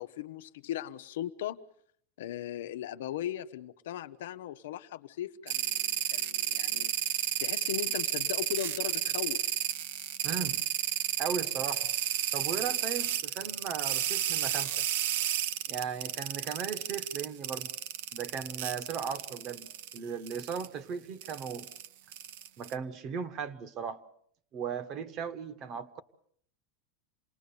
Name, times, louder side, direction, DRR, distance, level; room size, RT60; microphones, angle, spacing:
voice 1, 0.0-1.6 2.2-9.5, left 12 dB, 90° left, 1.0 m, -38 dB
sound 1, 5.5-20.0 20.3-20.7 21.2-22.7, right 12 dB, 65° right, 1.0 m, -32 dB
voice 2, 10.2-10.6 11.2-11.9 12.3-14.8 15.7-17.7 18.1-21.7 22.6-24.0 24.5-26.0, right 6 dB, 30° right, 1.3 m, -37 dB
28.0 x 20.0 x 7.0 m
supercardioid pair, 170°, 0 cm